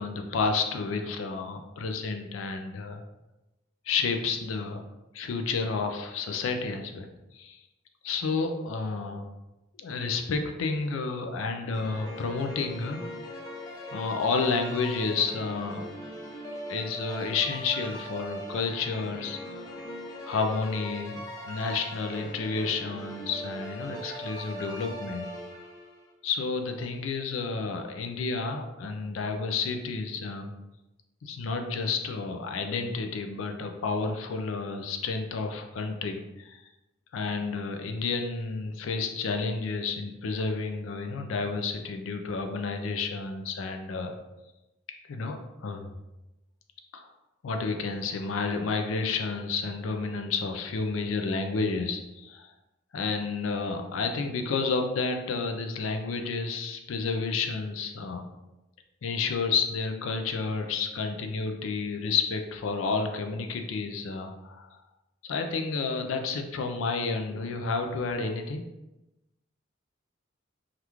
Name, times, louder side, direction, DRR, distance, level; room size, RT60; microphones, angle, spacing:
voice 1, 0.0-3.0 3.9-4.8 5.1-7.1 7.3-7.6 8.0-9.3 9.8-13.0 13.8-15.9 16.7-19.7 20.2-21.2 21.5-25.3 26.2-30.5 31.2-36.6 37.1-44.1 45.1-45.9 46.9-47.0 47.4-52.5 52.9-58.3 59.0-64.8 65.2-68.6, left 4 dB, 80° left, 5 dB, 0.4 m, -30 dB
sound 1, 11.7-26.0, equal, 20° left, 0.5 m, -40 dB
2.9 x 2.4 x 3.4 m, 0.98 s
head